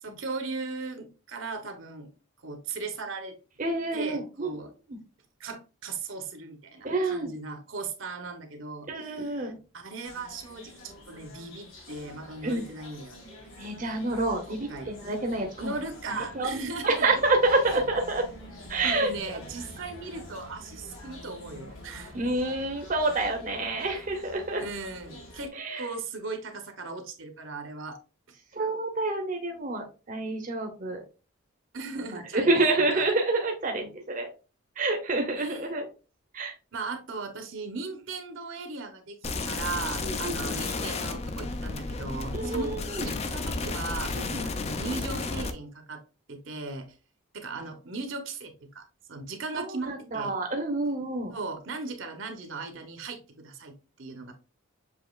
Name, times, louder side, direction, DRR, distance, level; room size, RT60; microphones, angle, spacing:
voice 1, 0.0-2.1 2.4-3.4 3.9-4.7 5.4-13.5 14.5-14.9 15.6-17.2 17.7-17.8 18.8-22.2 24.6-28.0 31.7-33.0 35.4-35.6 36.7-42.7 43.0-46.0 46.3-46.9 47.3-50.3 51.3-54.3, right 3 dB, 65° right, 6 dB, 0.8 m, -38 dB
voice 2, 3.6-4.6 4.9-5.0 6.8-7.3 8.9-9.6 12.4-12.7 13.6-15.7 16.1-16.5 16.8-18.2 18.7-19.1 22.1-24.6 25.5-25.9 28.5-31.0 32.1-34.3 34.8-35.9 36.3-36.5 40.0-40.7 42.3-43.1 44.1-44.5 49.5-51.3, right 2 dB, 40° right, 3 dB, 0.7 m, -28 dB
sound 1, 10.0-25.5, left 1 dB, 75° left, 2.0 m, -47 dB
sound 2, 39.2-45.5, left 3 dB, 30° left, 0.4 m, -32 dB
7.0 x 2.9 x 2.3 m, 0.33 s
head